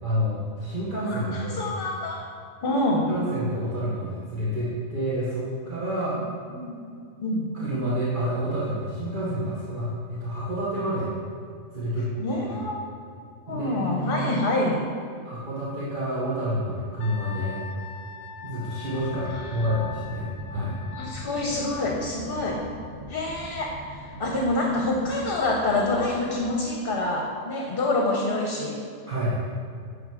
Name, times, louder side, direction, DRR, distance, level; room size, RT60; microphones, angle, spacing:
voice 1, 0.0-1.7 2.9-6.2 7.5-11.1 11.7-12.6 13.5-14.4 15.2-17.6 18.4-20.8 29.1-29.4, equal, 40° right, -9 dB, 1.4 m, -29 dB
voice 2, 1.1-2.2 2.6-3.1 6.5-6.8 7.2-7.5 12.2-12.8 13.5-14.8 21.0-22.6 23.1-28.8, left 2 dB, 50° left, -1 dB, 1.0 m, -26 dB
Wind instrument woodwind instrument, 17.0-21.2, left 7 dB, 75° left, 0.9 m, -41 dB
sound 1, 19.0-26.4, equal, 65° right, 1.3 m, -42 dB
9.9 x 3.5 x 6.2 m, 2.4 s
omnidirectional pair, 1.3 m